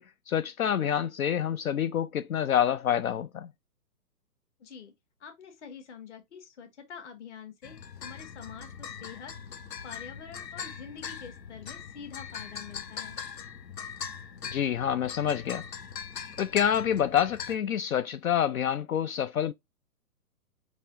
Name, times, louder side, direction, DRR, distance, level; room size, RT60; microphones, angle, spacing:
voice 1, 0.0-3.5 14.5-15.6 16.4-19.5, left 9 dB, 60° left, 0.5 m, -27 dB
voice 2, 4.6-4.9 5.2-9.3 9.8-13.2, left 7 dB, 45° left, 1.6 m, -46 dB
sound 1, 7.6-17.6, left 7 dB, 90° left, 1.1 m, -41 dB
4.6 x 4.1 x 2.5 m
hypercardioid pair, 155°, 48 cm